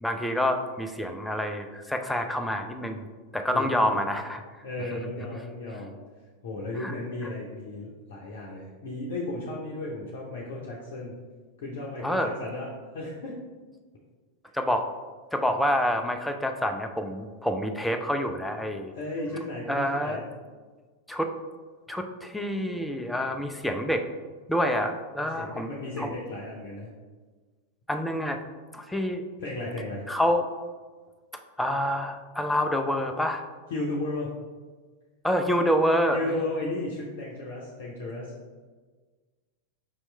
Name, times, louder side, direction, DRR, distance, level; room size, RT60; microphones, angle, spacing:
voice 1, 0.0-3.0 3.3-4.4 6.8-6.9 12.0-12.3 14.5-14.8 15.3-18.9 19.7-20.2 21.1-21.3 21.9-24.0 24.5-25.7 26.0-26.1 27.9-28.4 28.7-29.2 30.1-30.4 31.6-33.4 35.2-36.4, equal, 5° left, 5 dB, 0.4 m, -27 dB
voice 2, 3.5-4.0 4.6-6.0 6.4-11.1 11.6-12.7 12.9-13.3 18.9-20.2 25.2-26.9 29.4-30.1 33.7-34.3 36.1-38.3, left 2 dB, 55° left, -4 dB, 0.7 m, -34 dB
5.4 x 3.0 x 3.2 m, 1.4 s
figure-of-eight pair, 90°, 0 cm